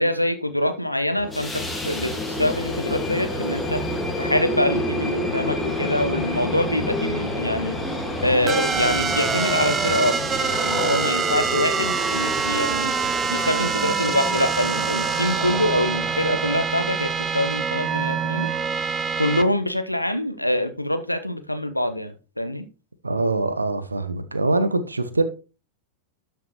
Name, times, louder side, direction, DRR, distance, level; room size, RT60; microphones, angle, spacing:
voice 1, 0.0-3.8 4.2-7.8 8.2-10.2 10.6-12.9 13.3-18.5 19.2-22.7, left 1 dB, 90° left, 1.0 m, -25 dB
sound 1, 1.2-16.7, left 1 dB, 5° left, 1.9 m, -29 dB
sound 2, 8.5-19.4, right 6 dB, 20° right, 0.8 m, -25 dB
voice 2, 23.0-25.2, right 2 dB, 80° right, 1.0 m, -23 dB
12.5 x 5.7 x 3.1 m
figure-of-eight pair, 90°, 0 cm